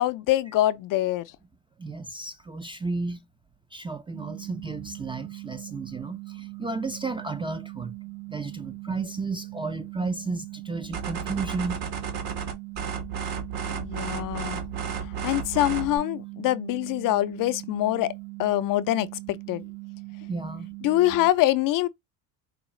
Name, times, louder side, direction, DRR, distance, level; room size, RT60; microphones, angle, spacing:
voice 1, 0.0-1.3 13.7-14.6 15.2-18.1 18.4-19.6 20.8-21.9, left 15 dB, 50° left, 0.4 m, -24 dB
voice 2, 1.8-3.2 3.7-8.0 8.3-11.8 20.3-20.7, right 3 dB, 10° right, 0.3 m, -33 dB
sound 1, 4.1-21.3, right 28 dB, 90° right, 0.5 m, -41 dB
sound 2, 10.9-16.0, right 6 dB, 65° right, 1.4 m, -33 dB
4.8 x 2.3 x 3.0 m
supercardioid pair, 95°, 44 cm